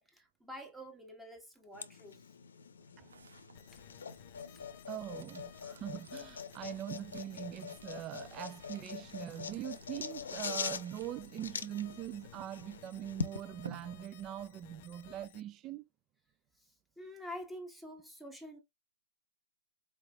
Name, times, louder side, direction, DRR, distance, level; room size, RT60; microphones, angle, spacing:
voice 1, 0.0-2.2 3.7-3.8 4.5-4.6 17.0-18.6, equal, 5° right, 1.4 m, -47 dB
sound 1, 1.7-13.4, left 6 dB, 80° left, 0.7 m, -43 dB
sound 2, 2.4-14.6, right 5 dB, 85° right, 0.8 m, -57 dB
sound 3, 3.5-15.4, left 12 dB, 45° left, 0.5 m, -57 dB
voice 2, 4.9-15.8, right 12 dB, 25° right, 0.4 m, -42 dB
4.8 x 3.2 x 2.3 m
hypercardioid pair, 135°, 0 cm